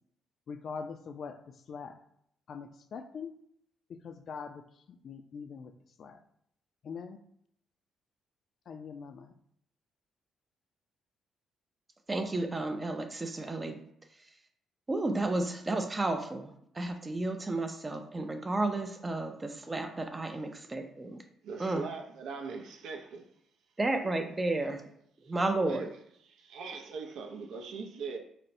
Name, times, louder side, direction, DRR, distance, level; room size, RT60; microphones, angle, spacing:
voice 1, 0.5-1.4 1.7-2.0 2.5-3.3 3.9-4.6 5.0-5.7 6.0-6.2 6.8-7.2 8.7-9.3, left 5 dB, 60° left, 0.3 m, -42 dB
voice 2, 12.1-13.8 14.9-21.2 21.6-21.9 23.8-24.8 25.3-25.9, right 2 dB, 25° right, 0.3 m, -32 dB
voice 3, 21.4-23.2 25.6-25.8 26.5-28.2, right 4 dB, 85° right, 0.4 m, -40 dB
4.1 x 2.0 x 2.6 m
cardioid pair, 90°, 0 cm